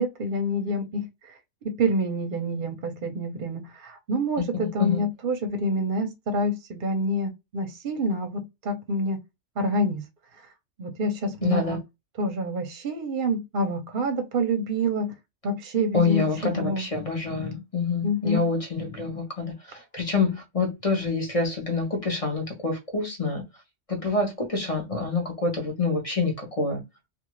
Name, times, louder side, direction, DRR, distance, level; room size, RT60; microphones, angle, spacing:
voice 1, 0.0-1.3 1.8-9.2 9.6-10.1 10.8-11.8 12.2-15.1 15.4-16.8 18.0-18.4, equal, 55° right, 0.7 m, -27 dB
voice 2, 11.4-11.8 15.9-23.4 23.9-26.8, left 3 dB, 35° left, 0.7 m, -27 dB
2.4 x 2.4 x 3.0 m
omnidirectional pair, 1.2 m